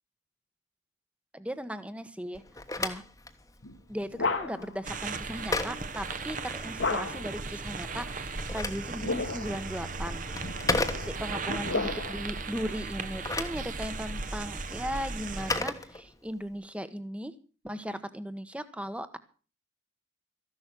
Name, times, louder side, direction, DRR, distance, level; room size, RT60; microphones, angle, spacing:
voice 1, 1.3-2.4 2.8-3.0 3.9-10.2 10.6-17.3 17.6-19.2, equal, 5° right, 12 dB, 1.1 m, -37 dB
Telephone, 2.3-6.9 8.1-11.5 12.9-16.5, left 3 dB, 15° left, 1.2 m, -36 dB
sound 1, 3.6-4.8 6.8-7.4 8.8-9.6 10.4-12.3, left 3 dB, 75° left, 1.9 m, -33 dB
sound 2, 4.8-15.6, right 3 dB, 40° right, 1.1 m, -36 dB
14.5 x 11.5 x 6.1 m, 0.37 s
head